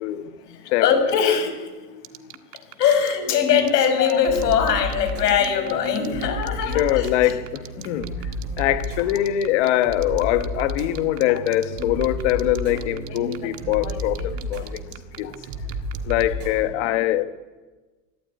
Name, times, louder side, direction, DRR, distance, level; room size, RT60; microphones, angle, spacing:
voice 1, 0.0-2.2 2.5-7.4 7.8-7.9 9.1-9.2 11.3-11.4 11.8-11.9 13.1-13.5 13.8-15.3, left 7 dB, 80° left, 5.8 m, -23 dB
sound 1, 2.0-16.2, right 16 dB, 70° right, 1.8 m, -40 dB
sound 2, 4.3-16.6, equal, 40° right, 7.0 m, -32 dB
voice 2, 6.7-8.1 8.6-14.9 15.2-15.3 16.0-17.2, left 13 dB, 45° left, 1.4 m, -23 dB
24.0 x 16.0 x 9.4 m
supercardioid pair, 170°, 47 cm